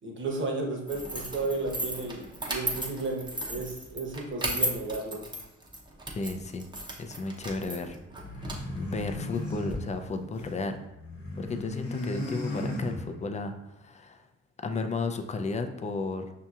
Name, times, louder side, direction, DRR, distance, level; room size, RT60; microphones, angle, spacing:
voice 1, 0.0-5.2, right 3 dB, 40° right, 1 dB, 1.0 m, -33 dB
sound 1, 0.9-9.7, right 1 dB, 15° right, 0.7 m, -36 dB
voice 2, 6.2-6.6 7.0-8.0 8.7-10.8 11.4-14.2 14.6-16.3, left 3 dB, 25° left, 7 dB, 0.4 m, -33 dB
sound 2, 8.2-10.6 10.9-13.4, left 1 dB, 50° left, 1.0 m, -36 dB
5.5 x 2.8 x 2.3 m, 0.89 s
cardioid pair, 90°, 30 cm